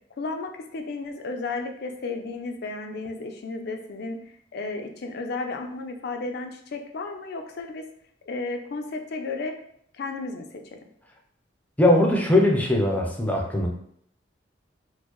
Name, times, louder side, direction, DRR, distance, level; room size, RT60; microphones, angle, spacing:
voice 1, 0.2-4.2 4.5-7.8 8.3-9.6 9.9-10.5, left 3 dB, 60° left, 5 dB, 0.4 m, -33 dB
voice 2, 11.8-13.7, left 1 dB, 10° left, 1 dB, 0.5 m, -20 dB
4.3 x 2.0 x 3.0 m, 0.67 s
head